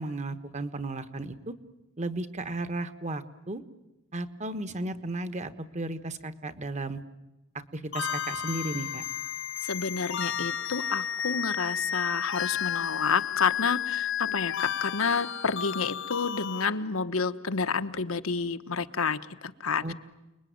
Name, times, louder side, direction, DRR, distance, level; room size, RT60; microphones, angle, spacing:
voice 1, 0.0-1.5 2.0-3.6 4.1-7.0 7.7-9.0 19.8-19.9, right 2 dB, 35° right, 12 dB, 1.4 m, -34 dB
sound 1, 7.9-16.7, left 9 dB, 65° left, 1.2 m, -32 dB
voice 2, 9.6-19.9, left 5 dB, 90° left, 10 dB, 1.2 m, -29 dB
29.5 x 21.0 x 9.5 m, 1.0 s
head